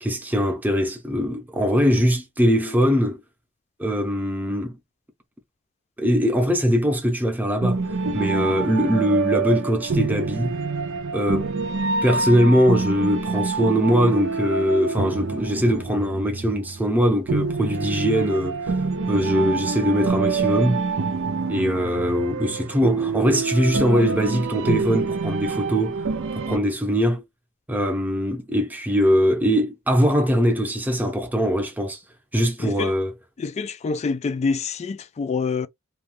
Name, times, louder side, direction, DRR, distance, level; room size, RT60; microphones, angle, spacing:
voice 1, 0.0-3.2 3.8-4.7 6.0-7.8 8.1-10.6 11.1-11.6 12.0-20.8 21.5-26.1 26.5-27.2 27.7-32.0 32.3-33.1, equal, 10° right, 0.7 m, -21 dB
sound 1, 7.6-26.6, right 4 dB, 65° right, 0.5 m, -26 dB
voice 2, 33.4-35.7, left 4 dB, 35° left, 0.3 m, -26 dB
2.5 x 2.3 x 3.2 m
head